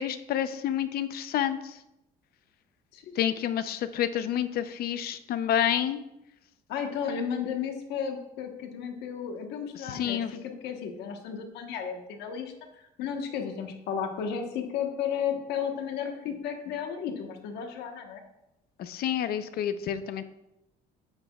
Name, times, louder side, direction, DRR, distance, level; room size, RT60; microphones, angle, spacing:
voice 1, 0.0-1.8 3.2-6.0 9.7-10.3 18.8-20.2, left 10 dB, 65° left, 12 dB, 0.6 m, -29 dB
voice 2, 6.7-18.2, left 7 dB, 85° left, 4 dB, 1.2 m, -33 dB
9.5 x 9.1 x 2.4 m, 0.88 s
cardioid pair, 110°, 17 cm